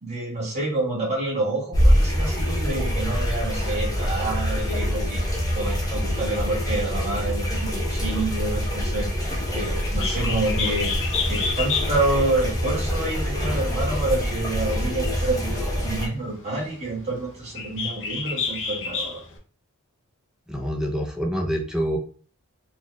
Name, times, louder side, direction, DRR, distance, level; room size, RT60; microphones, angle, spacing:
voice 1, 0.0-5.2 5.5-10.9 11.3-19.2, right 2 dB, 30° right, -4 dB, 1.5 m, -28 dB
sound 1, 1.7-16.1, equal, 15° left, 0.9 m, -25 dB
Bird, 9.8-19.4, left 5 dB, 60° left, 0.7 m, -32 dB
voice 2, 20.5-22.0, equal, 5° right, 2 dB, 0.6 m, -26 dB
4.0 x 2.3 x 3.1 m, 0.40 s
head